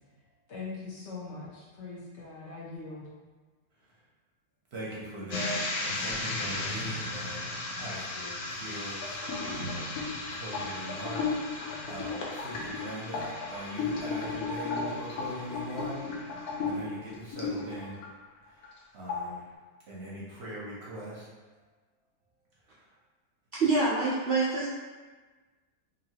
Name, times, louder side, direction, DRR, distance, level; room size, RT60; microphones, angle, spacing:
voice 1, 0.5-3.1, left 3 dB, 60° left, -6 dB, 0.8 m, -41 dB
voice 2, 4.7-9.8 10.3-16.0 16.2-18.0 18.5-18.7 18.9-19.4 19.9-21.3 22.6-22.9, right 1 dB, 55° right, -6 dB, 0.8 m, -41 dB
sound 1, 5.3-18.1 18.5-18.8 19.1-19.4, left 3 dB, 85° left, 1.1 m, -34 dB
voice 3, 23.5-24.7, right 3 dB, 85° right, -7 dB, 0.5 m, -26 dB
3.0 x 2.6 x 2.7 m, 1.3 s
omnidirectional pair, 1.6 m